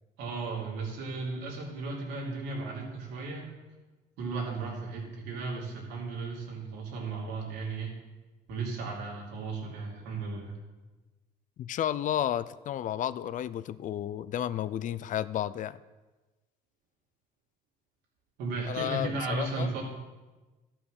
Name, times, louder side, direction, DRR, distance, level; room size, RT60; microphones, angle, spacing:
voice 1, 0.2-3.5 4.2-8.0 8.5-10.5 18.4-19.8, right 3 dB, 85° right, -2 dB, 2.9 m, -35 dB
voice 2, 11.6-15.8 18.7-19.7, left 11 dB, 50° left, 17 dB, 0.4 m, -32 dB
12.5 x 5.7 x 6.4 m, 1.2 s
cardioid pair, 105°, 17 cm